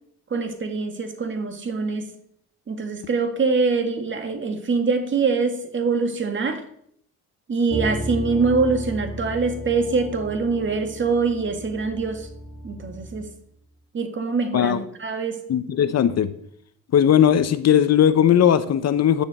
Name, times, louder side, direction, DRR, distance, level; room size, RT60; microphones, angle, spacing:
voice 1, 0.3-2.1 2.7-6.6 7.5-12.3 12.6-13.3 13.9-15.4, right 4 dB, 40° right, 2.0 m, -24 dB
sound 1, 7.7-13.3, equal, 20° right, 2.6 m, -34 dB
voice 2, 15.5-16.3 16.9-19.2, left 9 dB, 55° left, 0.9 m, -18 dB
10.5 x 6.9 x 7.7 m
cardioid pair, 100°, 31 cm